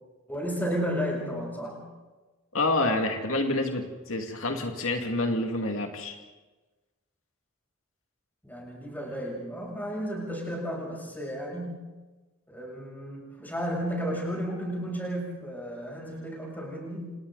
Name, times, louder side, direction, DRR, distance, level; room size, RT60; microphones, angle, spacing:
voice 1, 0.3-1.8 8.4-11.8 12.5-17.1, equal, 10° left, -2 dB, 7.6 m, -33 dB
voice 2, 2.5-6.2, left 2 dB, 85° left, 3 dB, 2.3 m, -28 dB
29.5 x 28.0 x 4.0 m, 1.2 s
head